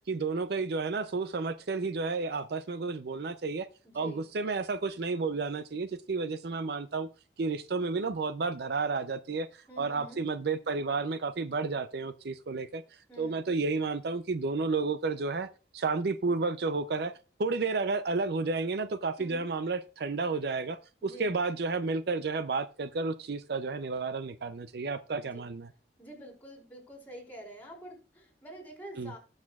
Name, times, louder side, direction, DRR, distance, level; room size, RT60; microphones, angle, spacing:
voice 1, 0.1-3.7 3.9-7.1 7.4-9.5 9.8-12.8 13.2-17.1 17.4-25.7 29.0-29.1, right 4 dB, 65° right, 0.5 m, -31 dB
voice 2, 3.8-4.3 9.7-10.3 13.1-13.4 19.2-19.5 21.0-21.4 25.1-25.5 26.0-29.2, right 1 dB, 10° left, 4.0 m, -47 dB
19.0 x 6.5 x 2.4 m
head